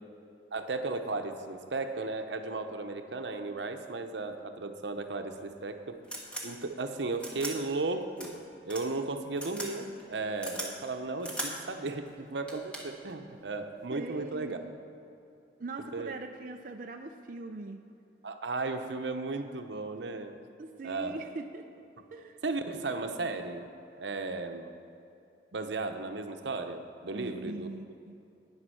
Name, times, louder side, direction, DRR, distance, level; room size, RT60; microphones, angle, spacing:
voice 1, 0.5-6.0 6.4-14.6 15.9-16.1 18.2-20.3 20.8-21.1 22.4-23.7 24.0-24.7 25.5-27.7, right 3 dB, 80° right, 6 dB, 0.8 m, -35 dB
sound 1, 5.4-5.5 6.0-6.5 7.2-7.5 8.2-8.3 8.7-8.8 9.4-9.7 10.0-10.7 11.2-11.5 12.1-12.2 12.5-13.0 14.2-14.5, right 1 dB, 5° left, 1.6 m, -38 dB
voice 2, 13.9-14.7 15.6-17.8 20.6-21.7 22.1-22.4 27.1-28.1, right 3 dB, 50° right, 4 dB, 0.5 m, -41 dB
9.7 x 9.6 x 6.3 m, 2.7 s
head